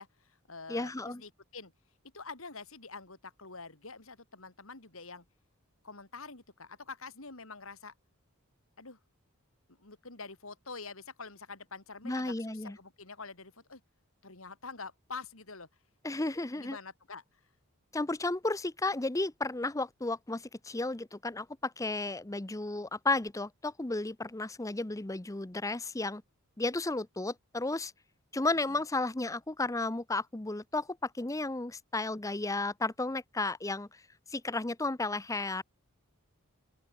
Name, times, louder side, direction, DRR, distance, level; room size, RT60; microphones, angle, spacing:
voice 1, 0.0-1.7 2.1-5.2 5.8-7.9 8.8-9.0 9.8-13.8 14.2-15.7 16.1-16.2 16.5-17.4 28.7-28.8, left 4 dB, 70° left, 3.7 m, -46 dB
voice 2, 0.7-1.2 12.0-12.8 16.0-16.8 17.9-26.2 26.6-27.9 28.3-34.0 34.3-35.6, left 2 dB, 15° left, 0.7 m, -33 dB
open air
head